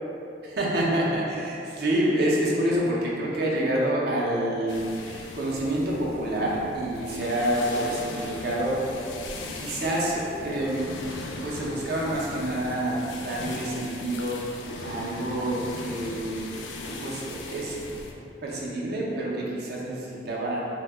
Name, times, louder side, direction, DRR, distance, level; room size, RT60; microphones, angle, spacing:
voice 1, 0.4-8.8 9.6-10.9 11.4-14.5 14.8-16.4 16.8-17.8 18.4-20.7, right 1 dB, 60° right, -4 dB, 0.6 m, -27 dB
sound 1, 4.7-18.1, left 3 dB, 80° left, 0.3 m, -39 dB
2.7 x 2.2 x 3.3 m, 2.7 s
head